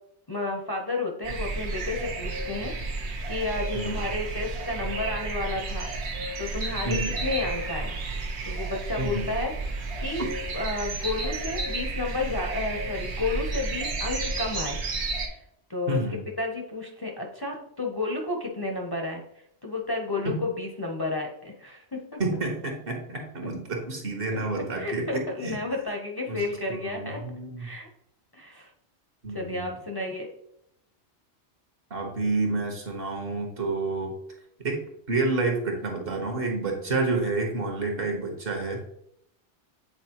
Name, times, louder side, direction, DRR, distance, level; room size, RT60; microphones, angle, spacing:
voice 1, 0.3-2.7 3.3-5.9 6.4-8.0 8.4-10.3 10.5-14.8 15.3-15.4 15.7-16.0 16.4-19.2 19.6-22.2 24.3-24.4 24.7-27.2 27.6-27.9 28.3-28.7 29.3-30.3 36.7-37.1, left 2 dB, 25° left, 1 dB, 0.6 m, -32 dB
sound 1, 1.2-15.3, right 3 dB, 85° right, 1.2 m, -32 dB
voice 2, 6.8-7.3 9.0-9.3 15.9-16.2 20.2-20.4 22.2-25.6 26.3-26.4 26.7-27.7 29.2-29.7 31.9-34.1 34.6-38.8, right 3 dB, 60° right, 2 dB, 1.4 m, -29 dB
8.1 x 4.1 x 2.9 m, 0.76 s
omnidirectional pair, 1.1 m